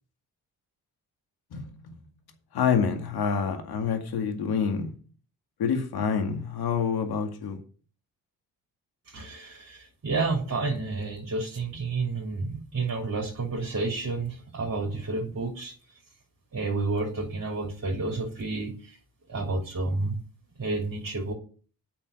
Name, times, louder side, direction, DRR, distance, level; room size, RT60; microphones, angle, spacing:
voice 1, 1.5-2.0 2.5-4.9 5.6-7.6, left 6 dB, 70° left, 2.2 m, -27 dB
voice 2, 9.1-15.7 16.5-18.9 19.3-20.1 20.6-21.3, right 3 dB, 45° right, 3.4 m, -30 dB
9.0 x 6.0 x 6.7 m
supercardioid pair, 55°, 39 cm